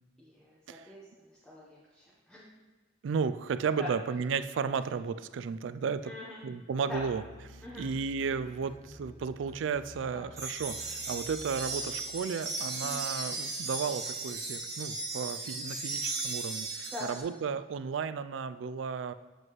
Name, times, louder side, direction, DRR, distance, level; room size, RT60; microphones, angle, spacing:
voice 1, 0.2-2.4 3.8-3.9 4.7-4.8 6.0-6.4 6.9-7.0 7.6-7.9 8.2-8.4 10.1-10.2 12.8-13.0 16.9-17.1, left 1 dB, 5° left, -7 dB, 1.0 m, -43 dB
voice 2, 3.0-6.1 6.4-7.2 7.5-19.1, right 6 dB, 85° right, 13 dB, 0.3 m, -34 dB
sound 1, 6.9-12.6, left 1 dB, 35° left, 1.3 m, -51 dB
sound 2, 10.4-17.2, right 3 dB, 15° right, 1.2 m, -36 dB
7.7 x 7.7 x 3.1 m, 1.2 s
head